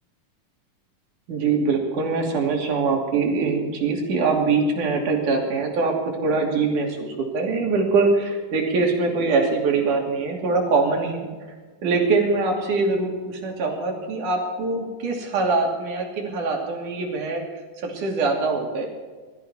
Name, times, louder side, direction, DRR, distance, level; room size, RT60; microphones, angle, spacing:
voice 1, 1.3-6.0 6.2-11.3 11.8-17.4 17.8-18.9, right 4 dB, 75° right, 1 dB, 4.3 m, -23 dB
20.5 x 14.0 x 4.5 m, 1.4 s
omnidirectional pair, 3.7 m